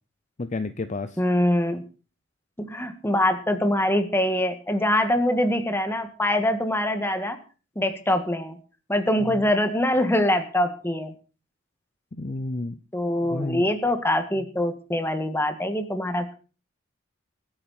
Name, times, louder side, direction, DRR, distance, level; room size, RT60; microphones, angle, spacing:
voice 1, 0.4-1.2 9.2-9.5 12.1-12.8 13.3-13.7, left 2 dB, 35° left, 11 dB, 0.6 m, -31 dB
voice 2, 1.2-1.8 2.6-7.4 7.7-8.6 8.9-11.1 12.9-16.3, left 1 dB, 10° left, 8 dB, 1.7 m, -24 dB
23.5 x 8.8 x 4.3 m, 0.37 s
head